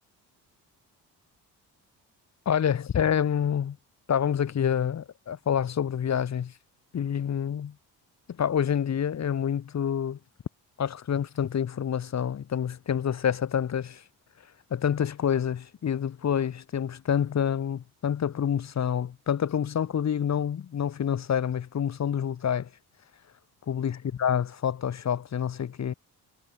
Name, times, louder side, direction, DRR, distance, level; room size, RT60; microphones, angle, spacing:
voice 1, 2.5-3.8 4.1-6.5 6.9-7.7 8.4-10.2 10.8-14.0 14.7-22.7 23.7-25.9, left 8 dB, 40° left, 0.9 m, -27 dB
supercardioid pair, 55°, 42 cm